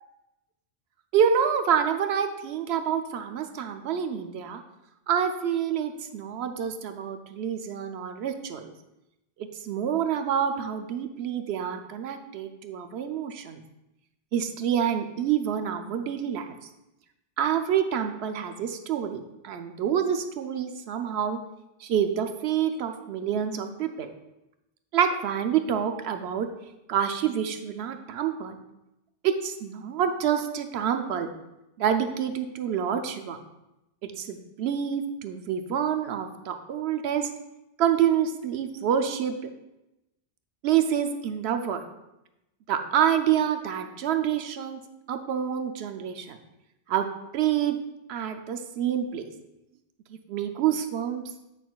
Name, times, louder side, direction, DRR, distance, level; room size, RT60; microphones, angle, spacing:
voice 1, 1.1-4.6 5.1-8.7 9.4-13.6 14.3-16.5 17.4-21.4 21.8-24.1 24.9-26.5 26.9-28.6 29.2-31.3 31.8-33.4 34.0-37.3 37.8-39.5 40.6-41.8 42.7-44.8 45.1-46.4 46.9-47.1 47.3-47.8 48.1-49.3 50.1-51.2, right 8 dB, 85° right, 7 dB, 0.9 m, -27 dB
8.9 x 5.9 x 2.3 m, 0.93 s
omnidirectional pair, 1.1 m